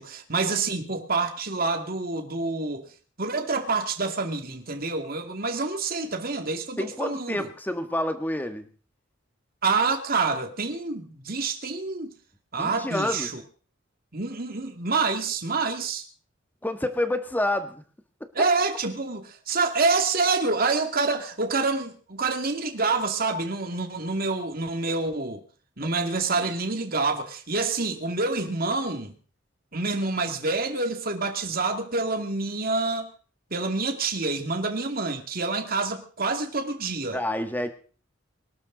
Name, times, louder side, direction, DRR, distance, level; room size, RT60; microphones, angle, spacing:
voice 1, 0.0-2.8 3.2-7.5 9.6-12.1 12.5-13.4 14.1-16.1 18.3-25.4 25.8-29.2 29.7-33.1 33.5-37.2, right 3 dB, 50° right, 2.4 m, -27 dB
voice 2, 6.8-8.7 12.5-13.3 16.6-17.8 37.1-37.7, left 1 dB, 10° left, 1.6 m, -28 dB
24.0 x 12.5 x 4.0 m
head